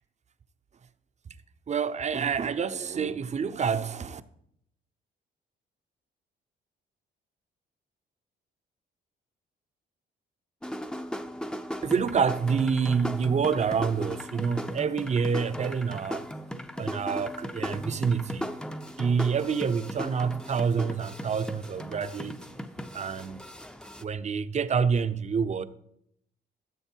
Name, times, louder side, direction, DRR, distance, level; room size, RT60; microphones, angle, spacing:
voice 1, 1.7-4.2 11.8-16.2 16.8-18.6 19.0-22.4 22.9-23.5 24.0-25.6, right 6 dB, 35° right, 0.6 m, -27 dB
sound 1, 10.6-24.0, equal, 5° left, 0.6 m, -37 dB
13.5 x 7.1 x 4.5 m
cardioid pair, 90°, 20 cm